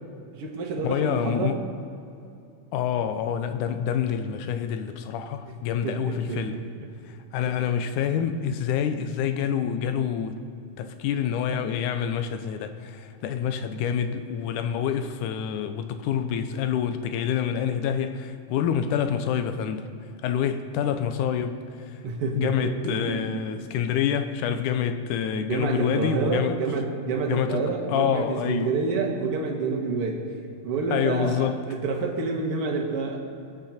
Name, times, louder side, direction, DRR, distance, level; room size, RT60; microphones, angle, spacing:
voice 1, 0.3-1.6 5.5-6.9 7.5-7.6 22.0-23.4 25.5-30.3 30.6-33.2, right 4 dB, 55° right, 2.1 m, -28 dB
voice 2, 0.8-1.6 2.7-6.6 7.3-10.4 10.8-19.8 20.2-21.6 22.3-26.6 27.3-27.6 27.9-28.7 30.9-31.6, left 8 dB, 80° left, 2.3 m, -27 dB
20.5 x 9.1 x 4.3 m
omnidirectional pair, 3.6 m